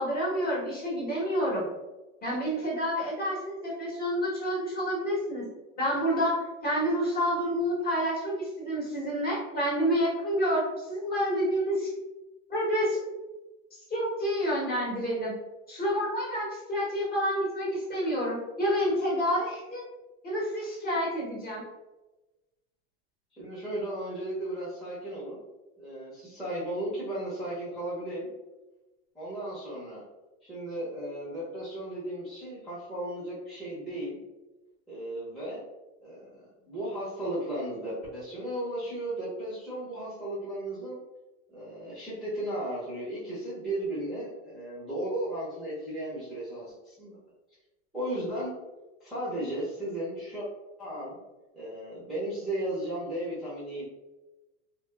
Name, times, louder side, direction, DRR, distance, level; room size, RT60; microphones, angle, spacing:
voice 1, 0.0-1.7 2.2-5.5 5.8-11.9 12.5-13.0 13.9-15.3 15.7-19.8 20.2-21.6, equal, 25° left, -4 dB, 0.9 m, -28 dB
voice 2, 23.3-25.4 25.8-28.3 29.1-30.0 30.4-34.2 34.9-35.6 36.0-41.0 41.5-47.2 47.9-48.5 49.0-50.5 50.8-51.2 51.5-53.8, right 1 dB, ahead, -10 dB, 0.7 m, -35 dB
2.8 x 2.5 x 2.3 m, 1.1 s
supercardioid pair, 135°, 37 cm